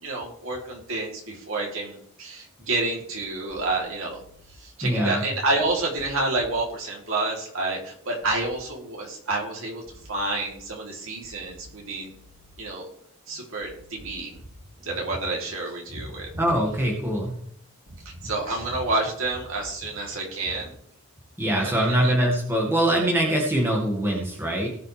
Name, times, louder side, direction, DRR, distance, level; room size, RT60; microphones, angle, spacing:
voice 1, 0.0-4.2 4.6-12.1 12.6-12.9 13.3-14.4 14.8-16.4 18.0-20.7 21.6-22.1, right 2 dB, 65° right, -1 dB, 3.3 m, -29 dB
sound 1, 3.5-4.5 5.6-6.5 8.2-8.5 9.9-10.5 11.2-12.5 13.6-14.5 16.2-16.5 17.9-18.5 19.2-19.6, equal, 75° left, 2.7 m, -51 dB
voice 2, 4.8-5.2 16.4-17.3 21.4-24.7, right 1 dB, 10° right, -2 dB, 2.1 m, -23 dB
18.5 x 6.4 x 3.4 m, 0.66 s
head